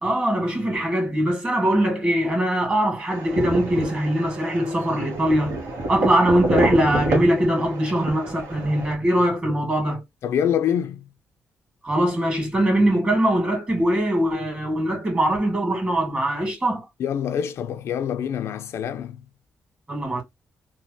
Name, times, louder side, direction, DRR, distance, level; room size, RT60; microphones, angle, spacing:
voice 1, 0.0-5.5 5.9-10.0 11.8-16.9 19.9-20.2, right 1 dB, 30° right, 1.7 m, -22 dB
sound 1, 3.1-8.9, right 1 dB, 85° right, 1.0 m, -28 dB
voice 2, 10.2-11.0 17.0-19.2, left 9 dB, 75° left, 0.3 m, -25 dB
3.0 x 2.1 x 2.6 m
cardioid pair, 100°, 5 cm